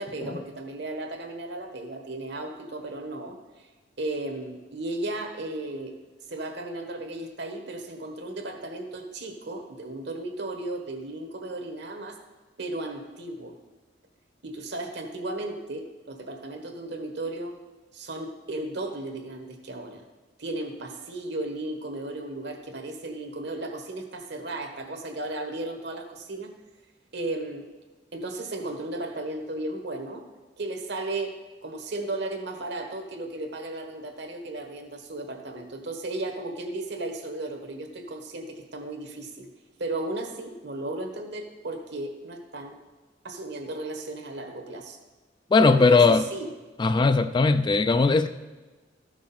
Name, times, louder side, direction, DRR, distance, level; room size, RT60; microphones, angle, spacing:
voice 1, 0.0-3.7 4.0-5.9 6.3-12.2 12.6-13.5 14.4-17.6 17.9-20.0 20.4-26.5 27.1-27.7 28.1-30.2 30.6-31.3 31.6-39.5 39.8-42.8 43.2-45.0 45.6-46.5, right 2 dB, 65° right, 5 dB, 1.3 m, -35 dB
voice 2, 45.5-46.2 46.8-48.3, left 3 dB, 25° left, 10 dB, 0.3 m, -19 dB
13.0 x 6.2 x 4.2 m, 1.3 s
head